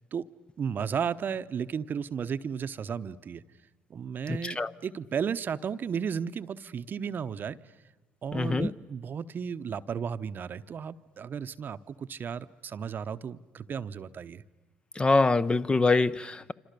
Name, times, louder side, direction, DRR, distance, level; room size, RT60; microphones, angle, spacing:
voice 1, 0.6-3.4 3.9-7.6 8.2-14.4, right 7 dB, 45° right, 0.9 m, -34 dB
voice 2, 4.3-4.7 8.3-8.7 15.0-16.5, left 3 dB, 20° left, 0.8 m, -24 dB
26.5 x 26.5 x 6.8 m
hypercardioid pair, 60°, 5 cm